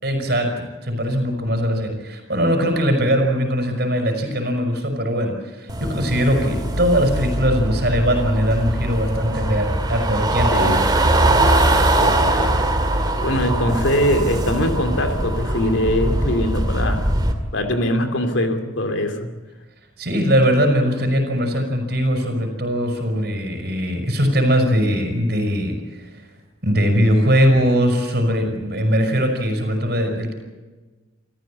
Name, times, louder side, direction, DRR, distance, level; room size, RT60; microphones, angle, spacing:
voice 1, 0.0-10.8 20.0-26.1 26.6-30.3, equal, 50° right, 5 dB, 5.5 m, -20 dB
sound 1, 5.7-17.3, right 1 dB, 20° right, 2.3 m, -21 dB
voice 2, 10.5-10.8 12.0-12.7 13.2-17.1 17.5-19.3, left 1 dB, 65° left, 7 dB, 2.6 m, -22 dB
28.5 x 14.5 x 8.6 m, 1.3 s
head